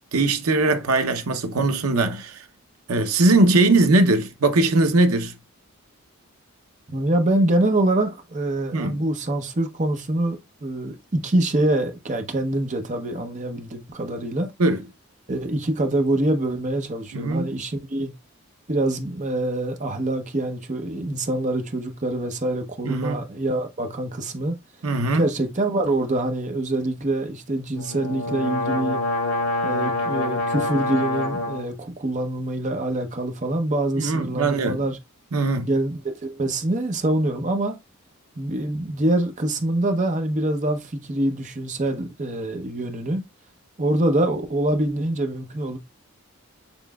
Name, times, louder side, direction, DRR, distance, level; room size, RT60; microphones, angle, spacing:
voice 1, 0.1-2.4 2.9-5.3 8.7-9.0 14.6-14.8 17.1-17.5 22.8-23.3 24.8-25.2 34.0-34.8 35.3-35.7, right 2 dB, 75° right, 0.8 m, -20 dB
voice 2, 6.9-14.5 15.3-18.1 18.7-24.6 25.1-29.0 29.6-35.0 35.6-37.8 38.4-43.2 43.8-45.8, right 1 dB, 35° right, 0.8 m, -25 dB
sound 1, 27.8-31.7, left 2 dB, 90° left, 2.9 m, -26 dB
7.0 x 3.2 x 2.3 m
head